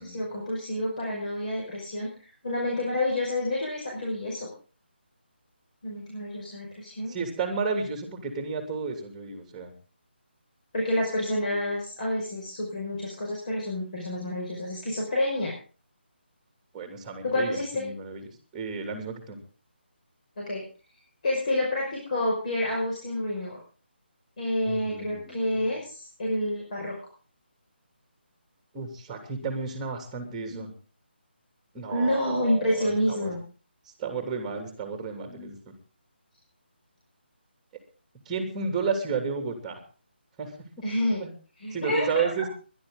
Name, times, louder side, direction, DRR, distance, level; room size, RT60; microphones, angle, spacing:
voice 1, 0.0-4.5 5.8-7.1 10.7-15.5 17.2-17.9 20.4-20.6 21.2-23.6 24.4-26.9 30.5-30.7 31.9-33.4 40.8-41.2 41.6-42.3, left 1 dB, 45° left, -3 dB, 5.8 m, -29 dB
voice 2, 7.1-9.7 16.7-18.2 18.5-19.4 24.6-25.7 28.7-30.7 31.7-33.3 34.0-35.7 38.2-39.8 40.4-40.5 41.2-41.3 41.7-42.5, right 5 dB, 10° right, 4 dB, 2.8 m, -32 dB
22.0 x 11.5 x 3.9 m, 0.38 s
figure-of-eight pair, 155°, 6 cm